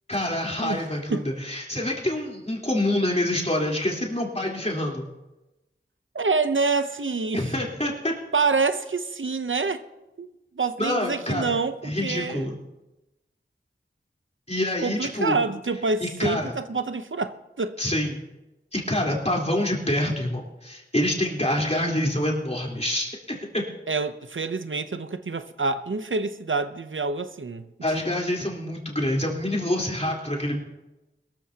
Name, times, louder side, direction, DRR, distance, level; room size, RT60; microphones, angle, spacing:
voice 1, 0.1-5.1 7.3-8.1 10.8-11.6 11.8-12.6 14.5-15.4 16.0-16.6 17.8-18.2 18.7-23.7 27.8-30.6, left 1 dB, 35° left, 3.8 m, -26 dB
voice 2, 6.1-7.5 8.3-9.8 10.2-10.3 10.6-12.6 14.8-17.8 23.9-27.7, right 4 dB, 85° right, 0.7 m, -27 dB
22.5 x 14.0 x 2.8 m
wide cardioid pair, 45°, 20 cm